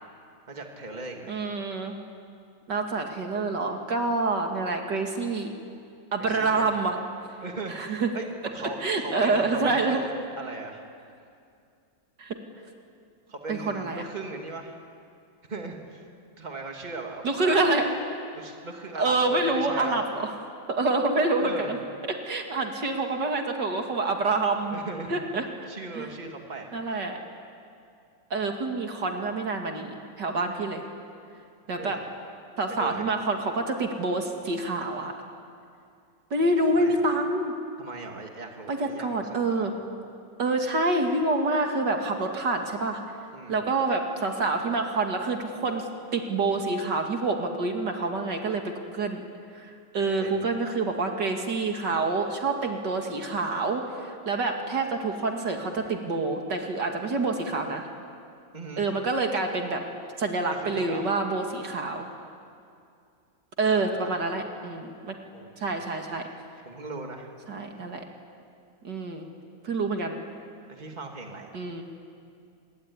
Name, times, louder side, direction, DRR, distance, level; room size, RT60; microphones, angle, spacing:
voice 1, 0.5-1.5 6.2-6.7 7.4-10.8 13.3-14.8 15.5-16.0 16.4-17.7 18.3-20.1 21.4-21.7 22.5-22.7 24.7-25.2 25.7-26.8 31.8-32.0 32.7-33.2 36.7-37.0 37.8-39.7 43.3-43.6 50.2-50.5 58.5-58.8 60.5-61.1 63.7-64.2 65.3-65.6 66.7-67.3 70.7-71.5, right 3 dB, 25° right, 2 dB, 2.7 m, -38 dB
voice 2, 1.3-1.9 2.7-5.5 6.1-7.0 7.7-8.1 8.8-10.0 12.2-12.3 13.5-14.1 17.2-17.9 19.0-20.3 20.7-21.8 22.0-24.8 25.1-25.7 26.0-26.1 26.7-27.2 28.3-30.8 31.7-32.0 32.6-35.1 36.3-37.5 38.7-39.8 40.4-43.0 43.5-49.2 49.5-57.9 58.8-59.8 60.2-62.1 63.6-65.1 65.6-66.3 67.5-68.0 68.8-69.3 69.6-70.2 71.5-71.8, right 3 dB, 65° right, 3 dB, 2.8 m, -27 dB
26.0 x 22.0 x 9.8 m, 2.4 s
omnidirectional pair, 2.0 m